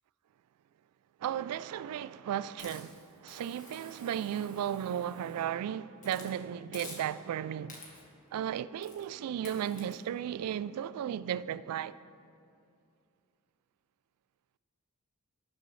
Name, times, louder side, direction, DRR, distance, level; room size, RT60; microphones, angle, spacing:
voice 1, 1.2-7.8 8.3-12.0, right 9 dB, 85° right, 0.3 m, -35 dB
Hiss, 2.6-5.5 6.0-6.3 6.7-7.3 7.7-8.2 8.8-9.1 9.5-9.9, left 3 dB, 35° left, 1.7 m, -51 dB
17.5 x 6.8 x 3.2 m
head